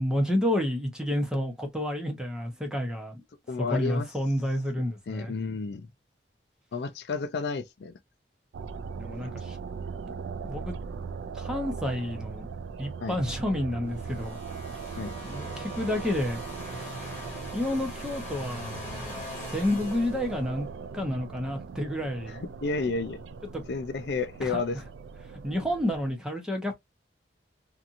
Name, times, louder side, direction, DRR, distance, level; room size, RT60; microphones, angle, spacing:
voice 1, 0.0-3.2 3.6-5.3 9.0-9.6 10.4-10.8 11.3-12.5 12.8-14.4 14.7-15.0 15.2-16.4 16.8-16.9 17.5-18.7 19.5-20.7 20.9-22.4 23.5-23.6 24.4-24.8 25.4-26.8, left 1 dB, 5° right, 0.8 m, -30 dB
voice 2, 3.5-4.1 5.1-5.9 6.7-7.9 13.0-13.2 15.0-15.1 22.6-23.2 23.7-24.8, left 4 dB, 65° left, 0.4 m, -31 dB
sound 1, 8.5-26.1, right 5 dB, 80° right, 0.3 m, -39 dB
sound 2, 13.9-20.8, left 1 dB, 10° left, 1.5 m, -42 dB
2.8 x 2.5 x 2.5 m
head